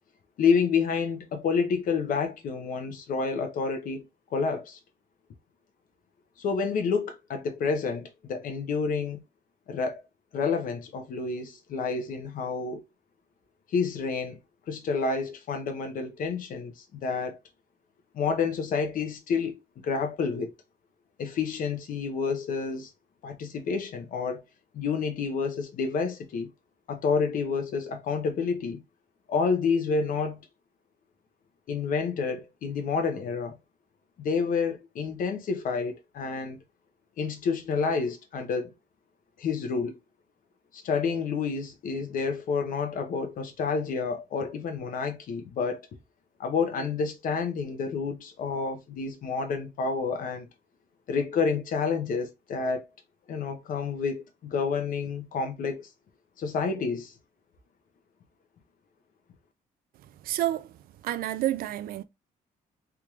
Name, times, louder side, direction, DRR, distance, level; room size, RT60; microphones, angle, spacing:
voice 1, 0.4-4.1 4.3-4.8 6.4-9.2 9.7-10.0 10.3-12.8 13.7-14.4 14.7-17.4 18.1-20.5 21.2-22.9 23.2-24.4 24.7-26.5 26.9-28.8 29.3-30.4 31.7-33.6 34.2-36.6 37.2-38.7 39.4-40.0 40.7-45.9 46.4-50.5 51.1-52.9 53.3-55.9 56.4-57.1, left 5 dB, 65° left, 0.9 m, -29 dB
voice 2, 60.2-60.7 61.0-62.0, right 13 dB, 75° right, 0.4 m, -29 dB
3.6 x 3.1 x 2.3 m
cardioid pair, 115°, 15 cm